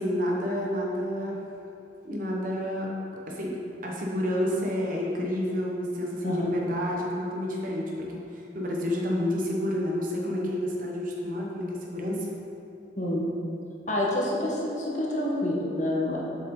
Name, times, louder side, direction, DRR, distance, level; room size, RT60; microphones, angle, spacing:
voice 1, 0.0-1.4 2.0-2.9 3.3-3.6 3.8-8.2 8.5-12.3, left 1 dB, 50° right, -2 dB, 1.0 m, -29 dB
voice 2, 13.9-16.2, left 1 dB, 45° left, -4 dB, 1.2 m, -27 dB
7.4 x 5.4 x 3.8 m, 2.7 s
head